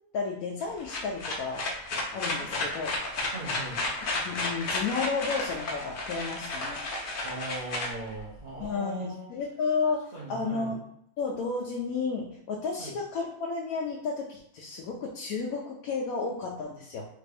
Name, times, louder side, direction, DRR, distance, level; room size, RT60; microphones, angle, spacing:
voice 1, 0.1-1.7 2.1-2.9 4.2-6.8 8.6-10.8 11.2-17.1, left 4 dB, 80° left, -2 dB, 1.1 m, -32 dB
sound 1, 0.6-8.7, left 2 dB, 55° left, 0.6 m, -32 dB
voice 2, 3.3-3.8 7.2-9.3 10.1-10.8 12.8-12.9, right 1 dB, 45° right, -7 dB, 0.8 m, -39 dB
3.4 x 2.5 x 3.3 m, 0.73 s
omnidirectional pair, 1.5 m